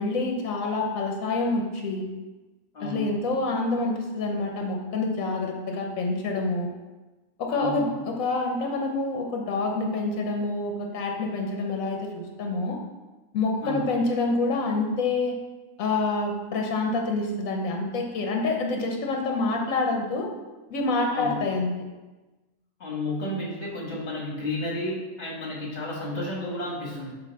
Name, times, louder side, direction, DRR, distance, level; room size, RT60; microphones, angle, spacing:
voice 1, 0.0-2.1 2.8-6.7 7.4-12.8 13.3-15.4 15.8-20.3 20.7-21.7, left 3 dB, 80° left, 2 dB, 1.2 m, -27 dB
voice 2, 2.7-3.1 7.5-8.0 13.6-13.9 21.1-21.4 22.8-27.1, left 1 dB, 55° left, -3 dB, 1.8 m, -32 dB
6.9 x 2.5 x 5.3 m, 1.2 s
omnidirectional pair, 1.4 m